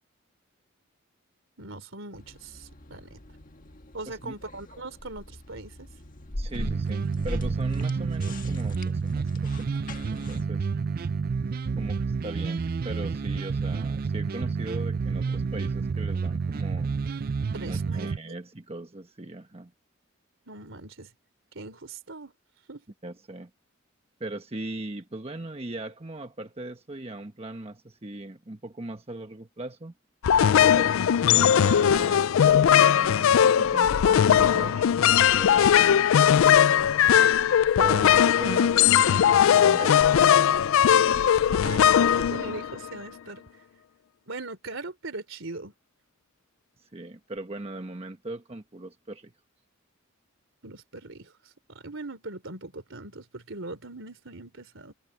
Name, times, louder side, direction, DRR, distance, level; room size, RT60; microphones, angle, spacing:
voice 1, 1.6-3.2 3.9-5.9 17.5-18.4 20.5-21.1 21.5-22.3 22.7-22.8 30.4-30.8 39.8-39.9 41.4-43.5 44.3-45.7 50.6-51.3 51.7-54.9, right 2 dB, 70° right, 3.6 m, -40 dB
sound 1, 2.1-10.5, left 1 dB, 40° left, 1.6 m, -40 dB
voice 2, 6.4-10.7 11.8-16.9 17.6-19.7 23.0-23.5 24.2-29.9 30.8-37.2 37.8-40.0 40.9-41.2 46.8-49.3, right 2 dB, 30° right, 1.1 m, -39 dB
sound 2, 6.5-18.2, right 5 dB, 45° right, 0.4 m, -29 dB
sound 3, 30.2-43.0, left 9 dB, 75° left, 0.4 m, -19 dB
head